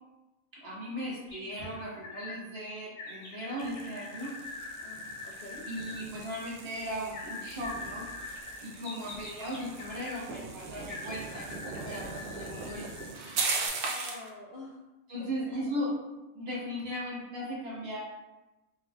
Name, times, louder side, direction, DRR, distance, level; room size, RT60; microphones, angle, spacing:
voice 1, 0.5-4.4 5.6-8.1 8.6-13.0 15.1-16.0 16.3-18.0, equal, 50° right, -5 dB, 1.1 m, -37 dB
sound 1, 1.3-2.4 3.0-6.0 7.1-10.2 10.9-13.1 13.6-13.7, left 3 dB, 80° left, 1.2 m, -44 dB
sound 2, 3.6-14.3, right 4 dB, 70° right, 0.5 m, -39 dB
voice 2, 4.8-5.7 8.8-9.2 13.8-14.8 15.2-15.7, left 2 dB, 60° left, -4 dB, 0.5 m, -46 dB
3.6 x 3.0 x 2.2 m, 1.0 s
omnidirectional pair, 1.5 m